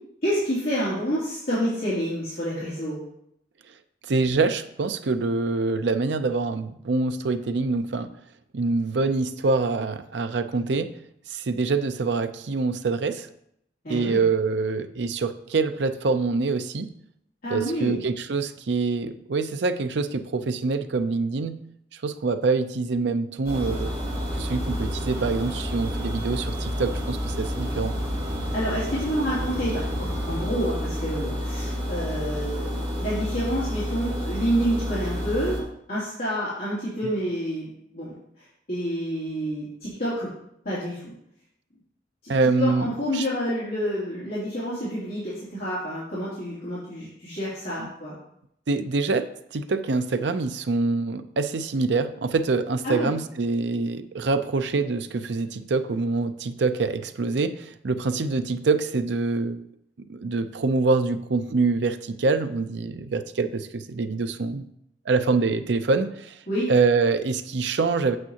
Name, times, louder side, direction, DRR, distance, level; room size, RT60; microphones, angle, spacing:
voice 1, 0.2-3.0 13.8-14.2 17.4-18.0 28.5-35.6 35.9-37.7 37.9-38.1 38.7-40.3 40.6-41.1 42.2-48.1 52.8-53.1 66.5-66.7, equal, 55° left, -11 dB, 2.9 m, -28 dB
voice 2, 4.1-8.1 8.5-10.9 11.3-13.3 13.9-16.9 17.5-21.6 22.0-24.0 24.4-27.9 42.3-43.3 47.8-47.9 48.7-59.6 60.1-64.7 65.1-66.4 66.7-68.2, right 3 dB, 70° right, 9 dB, 0.5 m, -25 dB
sound 1, 23.4-35.6, equal, 30° right, 3.5 m, -29 dB
8.7 x 7.2 x 2.9 m, 0.75 s
head